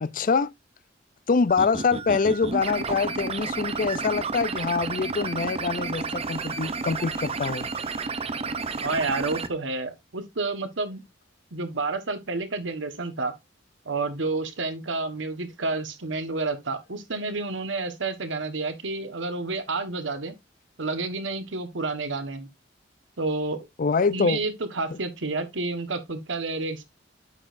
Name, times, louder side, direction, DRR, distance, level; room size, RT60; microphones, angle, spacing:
voice 1, 0.0-0.5 1.3-7.7 23.8-24.4 24.9-25.0, left 4 dB, 45° left, 0.4 m, -25 dB
sound 1, 1.5-9.5, right 4 dB, 35° right, 0.6 m, -31 dB
voice 2, 8.8-11.0 11.5-13.3 13.8-20.3 20.8-22.5 23.2-23.7 24.1-26.8, right 3 dB, 80° right, 1.3 m, -30 dB
8.9 x 6.3 x 2.5 m
head